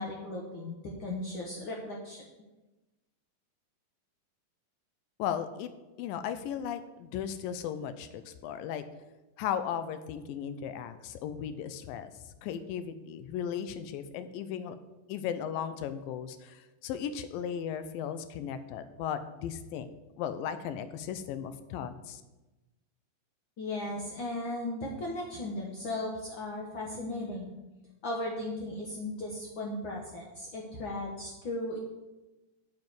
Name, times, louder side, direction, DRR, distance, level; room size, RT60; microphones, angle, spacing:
voice 1, 0.0-2.2 23.6-27.5 28.0-31.8, left 1 dB, 70° left, -1 dB, 1.1 m, -36 dB
voice 2, 5.2-5.7 6.0-8.8 9.4-14.8 15.1-19.9 20.2-22.2, left 8 dB, 85° left, 11 dB, 2.4 m, -36 dB
9.0 x 5.4 x 7.9 m, 1.1 s
omnidirectional pair, 4.0 m